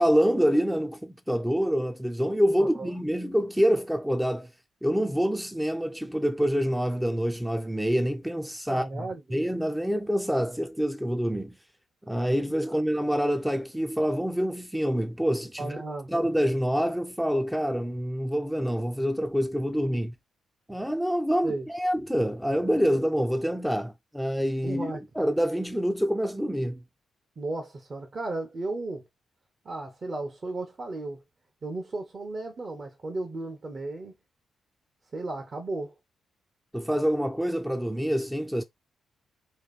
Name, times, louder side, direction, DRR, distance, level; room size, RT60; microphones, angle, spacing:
voice 1, 0.0-4.5 4.8-11.6 12.1-15.8 16.1-20.1 20.7-24.9 25.2-26.8 36.7-38.6, equal, 5° right, 0.6 m, -26 dB
voice 2, 2.6-3.0 8.7-9.4 12.7-12.8 15.6-16.1 19.9-20.0 21.4-21.7 24.6-25.0 27.4-29.0 29.6-31.2 31.6-34.1 35.1-35.9, right 2 dB, 45° right, 1.2 m, -35 dB
3.2 x 2.6 x 4.2 m
supercardioid pair, 50°, 0 cm